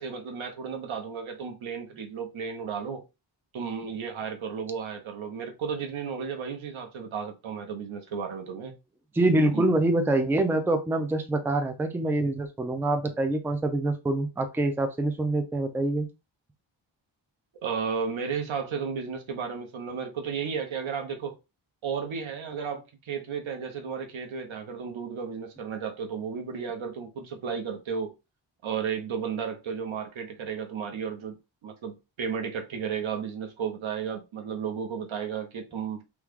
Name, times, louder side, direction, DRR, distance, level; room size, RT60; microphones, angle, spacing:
voice 1, 0.0-3.0 3.5-8.7 9.5-9.7 17.6-21.4 21.8-28.1 28.6-31.3 31.6-36.0, right 6 dB, 85° right, 1.0 m, -33 dB
voice 2, 9.1-16.1, right 2 dB, 5° right, 0.4 m, -25 dB
3.1 x 2.3 x 3.5 m
wide cardioid pair, 115°, 46 cm